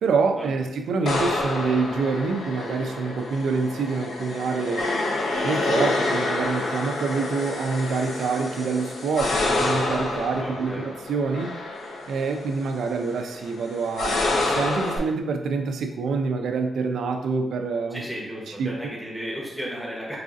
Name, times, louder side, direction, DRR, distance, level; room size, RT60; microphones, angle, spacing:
voice 1, 0.0-4.9 5.4-11.6 12.1-18.0 18.6-18.7, right 4 dB, 85° right, 5 dB, 0.4 m, -26 dB
sound 1, 1.1-15.0, left 2 dB, 60° left, 0.5 m, -28 dB
voice 2, 10.4-10.8 17.9-20.2, equal, ahead, -5 dB, 0.8 m, -34 dB
4.7 x 2.5 x 2.4 m, 0.93 s
wide cardioid pair, 160°, 0 cm